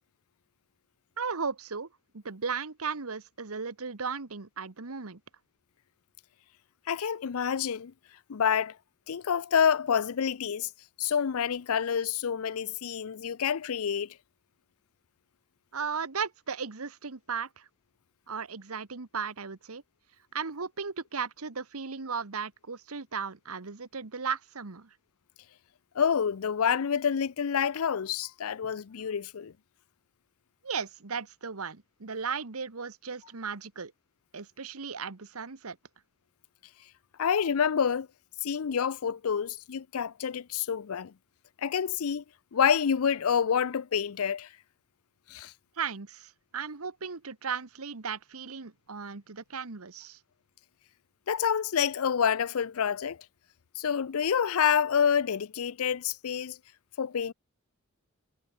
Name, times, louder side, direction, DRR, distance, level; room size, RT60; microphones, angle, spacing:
voice 1, 1.2-1.9 2.1-5.2 15.7-17.7 18.3-19.8 20.3-24.9 30.6-33.9 34.3-35.8 45.8-50.2, right 5 dB, 85° right, 1.3 m, -36 dB
voice 2, 6.9-7.9 8.3-8.7 9.1-10.7 11.0-14.1 26.0-29.5 37.2-38.1 38.4-41.1 41.6-42.2 42.5-44.5 45.3-45.5 51.3-53.2 53.8-56.6 57.0-57.3, left 7 dB, 80° left, 0.5 m, -28 dB
head